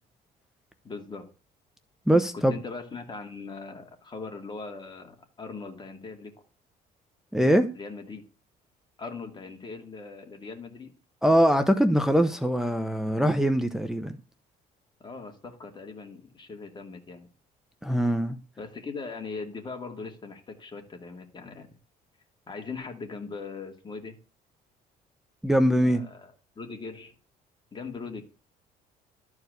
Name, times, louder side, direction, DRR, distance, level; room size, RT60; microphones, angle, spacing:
voice 1, 0.8-1.3 2.3-6.3 7.7-8.2 9.0-10.9 15.0-17.3 18.6-21.7 22.5-24.2 25.8-27.1 27.7-28.2, left 4 dB, 25° left, 2.7 m, -40 dB
voice 2, 2.1-2.5 7.3-7.7 11.2-14.2 17.8-18.4 25.4-26.1, equal, 5° right, 0.9 m, -22 dB
12.5 x 4.9 x 8.1 m
cardioid pair, 110°, 17 cm